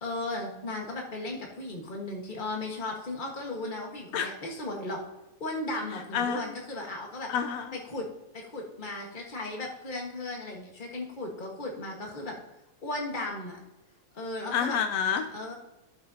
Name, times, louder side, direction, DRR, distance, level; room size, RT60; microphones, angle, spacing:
voice 1, 0.0-5.0 5.4-7.3 7.9-8.1 8.3-12.4 12.8-13.6 14.1-14.8 15.3-15.5, left 2 dB, 40° left, 0 dB, 0.6 m, -36 dB
voice 2, 5.9-6.5 7.3-7.8 14.5-15.3, left 7 dB, 75° left, 7 dB, 1.6 m, -29 dB
12.5 x 7.5 x 2.8 m, 0.98 s
omnidirectional pair, 3.4 m